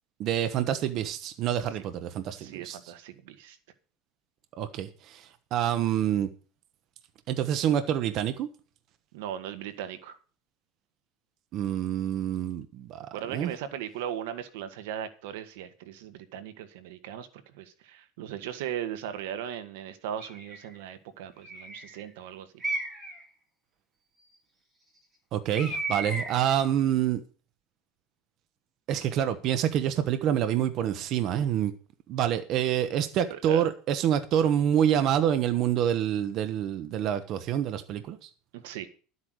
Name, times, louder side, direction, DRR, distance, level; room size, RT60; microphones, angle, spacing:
voice 1, 0.2-2.9 4.6-6.3 7.3-8.5 11.5-13.5 25.3-27.2 28.9-31.7 32.1-38.3, right 10 dB, 45° right, 1.1 m, -27 dB
voice 2, 2.3-3.6 9.1-10.2 13.1-17.3 17.5-22.5 33.3-33.7 38.5-38.9, right 10 dB, 80° right, 1.7 m, -38 dB
Bird, 20.2-20.7 21.4-22.0 22.6-23.2 25.5-26.5, right 2 dB, 20° right, 4.0 m, -34 dB
12.0 x 8.4 x 6.4 m
supercardioid pair, 150°, 0 cm